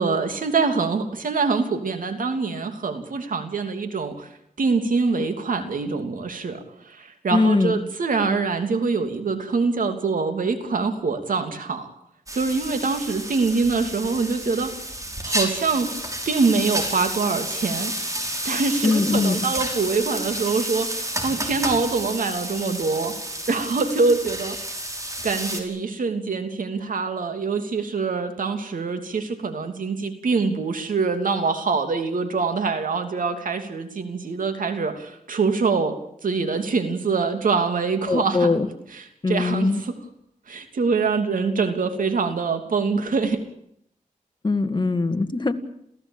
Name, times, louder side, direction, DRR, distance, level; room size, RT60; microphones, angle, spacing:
voice 1, 0.0-4.3 4.6-11.9 12.3-14.8 15.2-16.0 16.2-17.9 18.4-23.1 23.5-24.6 25.2-35.9 36.2-38.6 38.9-39.9 40.5-43.4, right 4 dB, 80° right, 7 dB, 3.0 m, -24 dB
voice 2, 7.3-7.8 18.8-19.4 38.1-38.7 39.2-39.8 44.4-45.5, left 3 dB, 35° left, 7 dB, 2.1 m, -21 dB
sound 1, 12.3-25.6, right 1 dB, 25° right, 5.4 m, -30 dB
28.5 x 16.0 x 8.9 m, 0.73 s
wide cardioid pair, 70°, 14 cm